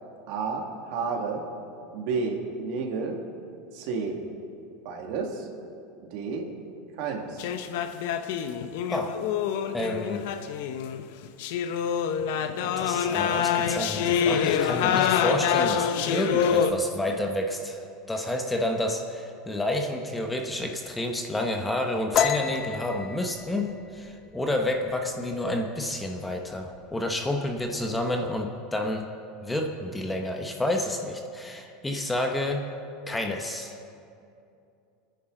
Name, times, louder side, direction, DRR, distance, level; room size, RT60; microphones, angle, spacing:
voice 1, 0.3-1.4 1.9-3.2 3.7-4.2 4.8-5.5 6.1-6.5 7.0-7.5, right 4 dB, 60° right, 1 dB, 2.0 m, -31 dB
sound 1, 7.4-16.7, left 8 dB, 70° left, 0.8 m, -26 dB
voice 2, 9.7-10.3 12.8-29.1 29.4-32.7 33.1-33.7, left 1 dB, 10° left, 3 dB, 0.9 m, -30 dB
sound 2, 22.1-25.6 25.9-26.2 26.6-27.1 27.4-28.2, left 8 dB, 35° left, 0.7 m, -29 dB
25.0 x 10.5 x 3.9 m, 2.6 s
supercardioid pair, 150°, 0 cm